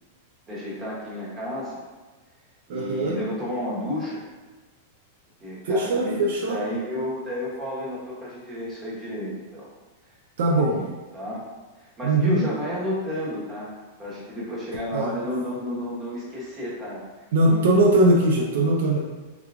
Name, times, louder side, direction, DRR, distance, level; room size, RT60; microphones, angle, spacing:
voice 1, 0.5-1.8 2.7-4.3 5.4-9.7 10.5-10.8 11.1-11.4 11.7-13.7 14.0-17.0 17.4-17.7, left 1 dB, 20° right, -6 dB, 1.1 m, -32 dB
voice 2, 2.7-3.2 5.6-6.6 10.4-10.8 12.0-12.5 14.9-15.1 17.3-19.0, right 1 dB, 75° right, 0 dB, 0.4 m, -20 dB
3.6 x 2.9 x 2.4 m, 1.3 s
supercardioid pair, 150°, 0 cm